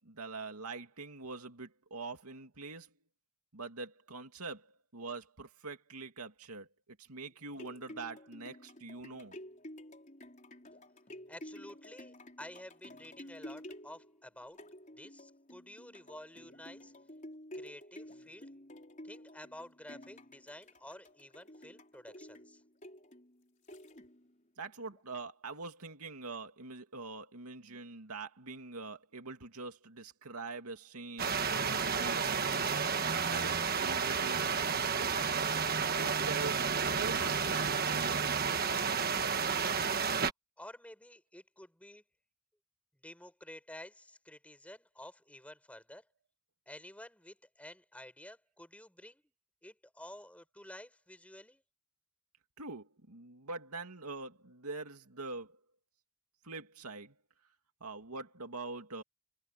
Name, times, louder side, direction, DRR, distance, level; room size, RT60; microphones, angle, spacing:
voice 1, 0.0-3.0 3.5-9.4 24.6-32.8 33.1-35.4 36.0-38.5 52.6-55.6 56.4-57.2 57.8-59.0, right 3 dB, 90° right, 2.6 m, -44 dB
sound 1, 7.3-24.4 24.9-25.0, left 1 dB, 35° left, 4.9 m, -51 dB
voice 2, 11.3-14.6 14.9-16.9 17.5-18.5 19.0-22.6 40.6-42.0 43.0-46.0 46.6-49.3 49.6-51.6, left 1 dB, 5° left, 6.8 m, -51 dB
sound 2, 31.2-40.3, right 6 dB, 40° right, 1.5 m, -31 dB
head